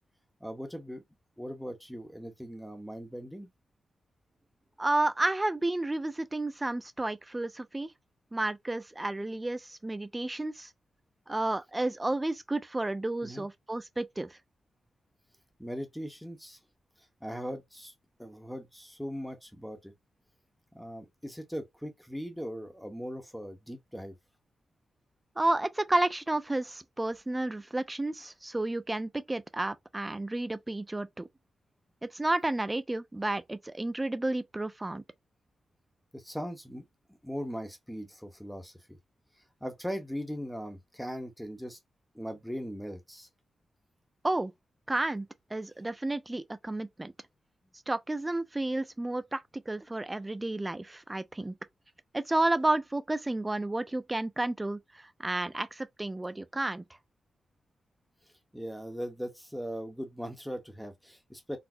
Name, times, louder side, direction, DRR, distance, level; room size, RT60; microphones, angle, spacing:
voice 1, 0.4-1.0 1.4-3.5 13.2-13.5 15.6-16.6 17.2-17.9 18.2-19.9 20.7-24.1 36.1-39.0 39.6-41.8 42.1-43.3 58.5-61.6, equal, ahead, 0.9 m, -39 dB
voice 2, 4.8-7.9 8.3-10.7 11.3-14.4 25.4-31.3 32.1-35.0 44.2-44.5 44.9-47.1 47.9-51.5 52.1-56.8, right 2 dB, 15° right, 0.4 m, -31 dB
4.0 x 2.0 x 2.6 m
wide cardioid pair, 115°, 0 cm